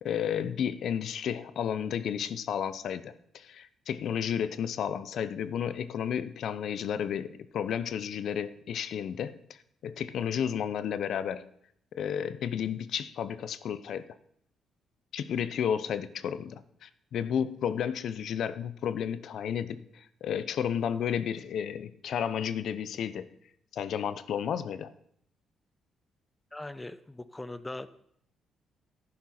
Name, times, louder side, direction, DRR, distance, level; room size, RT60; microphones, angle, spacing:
voice 1, 0.0-9.4 9.8-11.5 11.9-14.0 15.1-23.2 23.7-24.9, left 8 dB, 70° left, 0.6 m, -32 dB
voice 2, 26.5-27.9, left 2 dB, 15° left, 0.7 m, -40 dB
11.5 x 10.0 x 4.3 m
cardioid pair, 90°, 0 cm